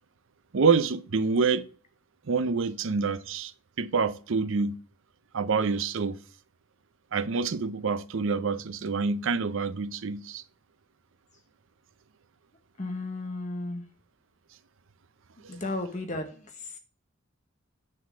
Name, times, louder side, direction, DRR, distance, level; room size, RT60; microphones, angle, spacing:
voice 1, 0.5-1.7 2.3-3.5 3.8-4.8 5.3-6.2 7.1-10.4, right 4 dB, 70° right, 0.6 m, -27 dB
voice 2, 12.8-13.8 15.5-16.8, left 2 dB, 35° left, 1.0 m, -34 dB
9.8 x 4.2 x 6.1 m
head